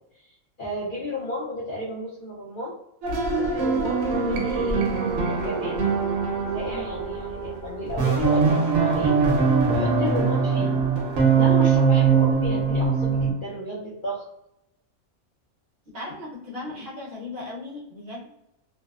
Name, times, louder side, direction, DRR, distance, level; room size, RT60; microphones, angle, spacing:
voice 1, 0.6-2.7 3.4-4.9 5.3-5.8 6.5-9.2 9.7-10.7 11.3-14.2 16.7-16.8, left 1 dB, 60° left, -6 dB, 0.5 m, -33 dB
sound 1, 3.0-13.3, right 5 dB, 70° right, 1.1 m, -22 dB
voice 2, 15.9-18.3, left 2 dB, 50° right, -6 dB, 0.9 m, -37 dB
2.6 x 2.0 x 2.3 m, 0.82 s
omnidirectional pair, 1.5 m